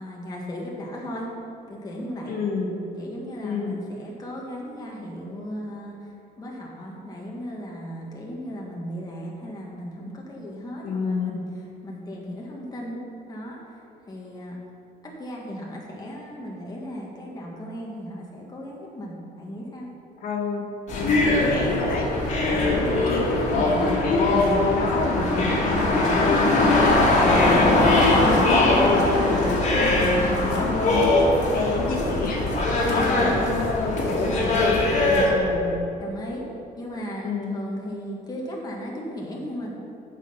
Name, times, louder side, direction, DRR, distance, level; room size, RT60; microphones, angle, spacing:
voice 1, 0.0-1.3 1.7-2.3 3.0-11.4 11.8-13.0 13.3-13.6 14.1-14.6 15.2-19.9 32.8-33.4 36.0-36.5 36.8-39.7, equal, 20° left, -3 dB, 1.5 m, -36 dB
voice 2, 2.3-2.8 3.4-3.8 10.8-11.3 20.2-20.6 20.9-26.8 27.2-35.7 37.2-37.5, left 3 dB, 60° left, -2 dB, 1.7 m, -28 dB
sound 1, 20.9-35.3, left 2 dB, 45° left, 2.1 m, -21 dB
8.2 x 6.4 x 5.6 m, 2.9 s
cardioid pair, 110°, 17 cm